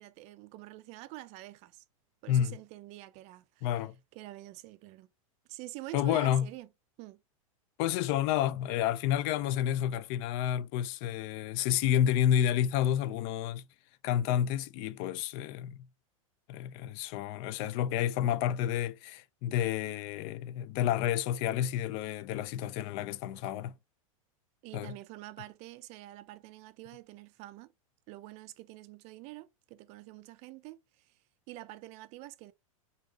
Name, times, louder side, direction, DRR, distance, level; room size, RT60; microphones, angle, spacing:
voice 1, 0.0-1.8 2.2-3.8 4.1-5.1 5.5-6.7 7.0-7.2 24.6-27.7 28.1-31.2 31.5-32.5, right 17 dB, 40° right, 0.4 m, -47 dB
voice 2, 3.6-3.9 5.9-6.5 7.8-13.6 14.0-15.8 16.5-23.7 24.7-24.9, left 10 dB, 45° left, 0.4 m, -30 dB
3.8 x 2.5 x 2.3 m
hypercardioid pair, 115°, 18 cm